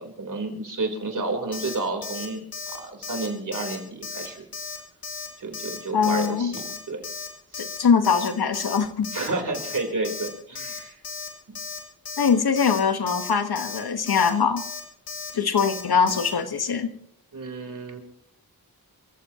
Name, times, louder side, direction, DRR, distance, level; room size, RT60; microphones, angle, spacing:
voice 1, 0.0-4.4 5.4-7.1 7.5-7.6 9.1-11.0 17.3-18.0, right 3 dB, 55° right, 3 dB, 3.9 m, -31 dB
Alarm, 1.5-1.8 2.0-2.3 2.5-2.8 3.0-3.3 3.5-3.8 4.0-4.3 4.5-4.8 5.0-5.3 5.5-5.8 6.0-6.3 6.5-6.8 7.0-7.3 7.5-7.8 8.0-8.3 8.5-8.8 9.0-9.3 9.5-9.8 10.0-10.3 10.5-10.8 11.0-11.3 11.5-11.8 12.0-12.3 12.6-12.8 13.1-13.3 13.6-13.8 14.1-14.3 14.6-14.8 15.1-15.3 15.6-15.8 16.1-16.3, left 5 dB, 70° left, 3.4 m, -35 dB
voice 2, 5.9-6.5 7.6-9.1 12.2-14.6 15.3-16.9, left 6 dB, 90° left, 8 dB, 1.5 m, -22 dB
28.0 x 15.0 x 3.0 m, 0.71 s
wide cardioid pair, 115°, 37 cm